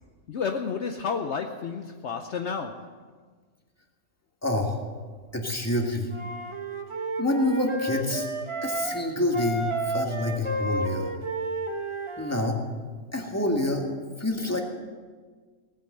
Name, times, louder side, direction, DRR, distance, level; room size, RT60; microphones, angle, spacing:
voice 1, 0.3-3.1, left 5 dB, 60° left, 5 dB, 1.0 m, -31 dB
voice 2, 4.4-4.8 5.3-6.1 7.2-8.3 8.6-11.1 12.2-12.6 13.1-14.6, left 1 dB, 10° left, 1 dB, 1.8 m, -27 dB
Wind instrument woodwind instrument, 6.1-9.0 9.3-12.5, right 2 dB, 25° right, 1.0 m, -32 dB
17.5 x 9.2 x 7.9 m, 1.5 s
omnidirectional pair, 1.4 m